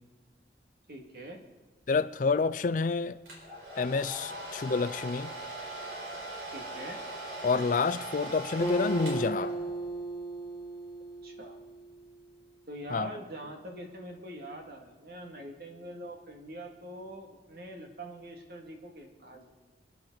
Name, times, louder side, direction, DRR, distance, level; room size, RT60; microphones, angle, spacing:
voice 1, 0.9-1.4 6.5-7.0 11.2-11.6 12.7-19.4, right 1 dB, 60° right, 2.2 m, -44 dB
voice 2, 1.9-3.2 3.8-5.3 7.4-9.5 12.9-13.1, left 4 dB, 45° left, 0.4 m, -28 dB
Domestic sounds home sounds, 3.3-9.9, right 1 dB, 80° right, 4.6 m, -40 dB
Acoustic guitar, 8.6-12.2, right 2 dB, 20° left, 1.1 m, -36 dB
27.0 x 10.5 x 4.0 m
head